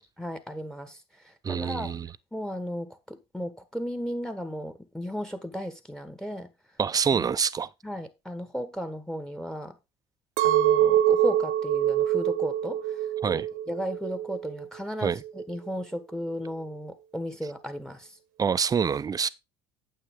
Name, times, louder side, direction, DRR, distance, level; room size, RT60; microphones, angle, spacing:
voice 1, 0.2-1.9 2.3-6.5 7.8-9.8 10.4-18.2, equal, 5° left, 1.3 m, -35 dB
voice 2, 1.4-2.1 6.8-7.7 13.2-13.5 15.0-15.2 18.4-19.3, right 6 dB, 25° right, 0.6 m, -26 dB
Chink clink, 10.4-14.7 15.1-15.7, right 11 dB, 75° right, 1.2 m, -25 dB
9.0 x 7.3 x 3.6 m
supercardioid pair, 90°, 14 cm